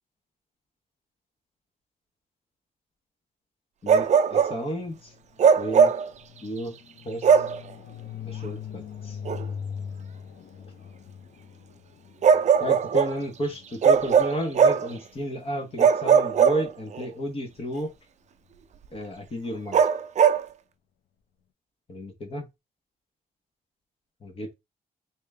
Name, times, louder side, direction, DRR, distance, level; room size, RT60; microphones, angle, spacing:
voice 1, 3.8-5.0 5.6-5.9 6.4-6.7 7.0-7.3 8.2-9.2 12.6-17.9 18.9-19.8 21.9-22.5 24.2-24.5, equal, 35° left, 1.2 m, -32 dB
Bark, 3.9-4.6 5.4-6.1 7.2-7.6 9.3-9.4 12.2-13.2 13.8-14.9 15.8-17.0 19.7-20.4, right 7 dB, 50° right, 0.4 m, -19 dB
sound 1, 4.8-14.7, left 7 dB, 70° left, 0.7 m, -41 dB
3.6 x 2.9 x 3.3 m
wide cardioid pair, 165°, 16 cm